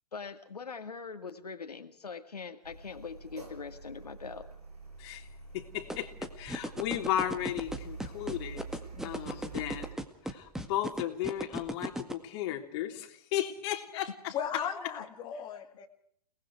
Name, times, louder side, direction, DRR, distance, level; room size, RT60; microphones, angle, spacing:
voice 1, 0.1-4.5, left 5 dB, 80° left, 6 dB, 2.1 m, -42 dB
Car, 2.6-9.9, right 4 dB, 80° right, 7.5 m, -47 dB
voice 2, 5.5-6.1 6.4-8.6 9.0-9.9 10.2-14.9, left 12 dB, 40° left, 5 dB, 3.3 m, -35 dB
sound 1, 5.9-12.1, right 1 dB, ahead, 1.8 m, -35 dB
voice 3, 14.3-15.9, left 8 dB, 25° left, 3 dB, 2.2 m, -36 dB
30.0 x 19.5 x 4.7 m, 0.64 s
figure-of-eight pair, 120°, 20 cm